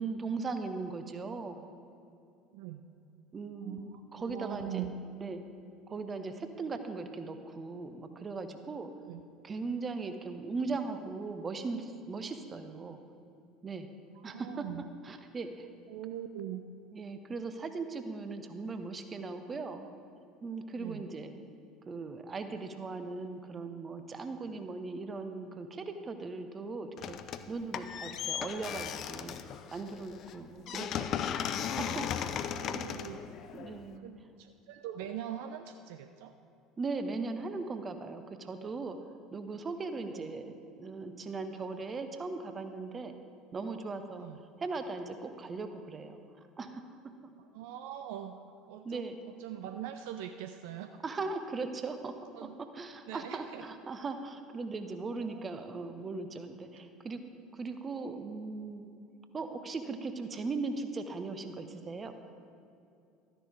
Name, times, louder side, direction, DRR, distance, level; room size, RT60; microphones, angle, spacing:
voice 1, 0.0-1.6 3.3-4.8 5.2-5.4 5.9-8.9 9.4-13.0 13.6-13.9 14.2-14.6 15.0-15.7 16.9-19.9 20.4-21.4 21.9-27.2 27.5-29.4 29.7-31.2 31.8-32.4 32.7-32.9 33.5-34.1 36.8-39.0 39.3-43.1 43.5-44.3 44.6-46.2 46.6-46.8 48.8-49.1 51.0-52.3 52.7-57.2 57.5-58.9 59.3-62.1, right 3 dB, 25° right, 8 dB, 0.8 m, -38 dB
voice 2, 2.5-2.8 3.6-4.9 9.1-9.2 14.1-14.9 15.9-16.6 20.8-21.1 32.5-33.3 34.0-36.3 40.1-40.3 44.1-44.4 47.5-48.4 48.7-51.0 52.3-52.6 53.1-53.7 55.2-55.5 56.7-56.8, right 11 dB, 60° right, 7 dB, 0.4 m, -42 dB
sound 1, 27.0-27.5 27.7-34.0, left 9 dB, 45° left, 0.5 m, -37 dB
13.0 x 10.0 x 3.5 m, 2.6 s
figure-of-eight pair, 65°, 0 cm